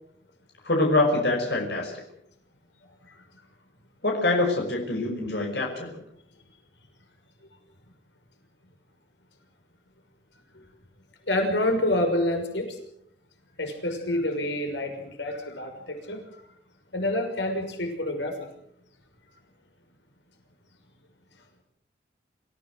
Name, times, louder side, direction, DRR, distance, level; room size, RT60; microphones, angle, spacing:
voice 1, 0.6-2.0 4.0-6.0, left 2 dB, 70° left, 1 dB, 5.6 m, -25 dB
voice 2, 11.3-12.8 13.6-16.2 16.9-18.4, left 1 dB, 85° left, 4 dB, 6.2 m, -27 dB
27.5 x 16.0 x 7.9 m, 0.71 s
head